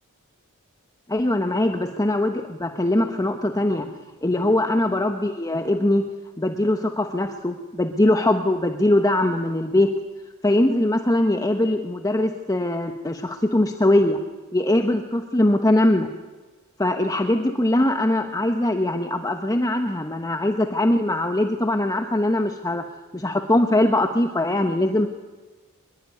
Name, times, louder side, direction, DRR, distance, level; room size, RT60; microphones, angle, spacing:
voice 1, 1.1-3.9 4.2-6.1 6.4-9.9 10.4-14.2 14.5-16.1 16.8-22.8 23.1-25.1, left 1 dB, 15° left, 6 dB, 1.1 m, -21 dB
25.0 x 21.5 x 9.6 m, 1.3 s
head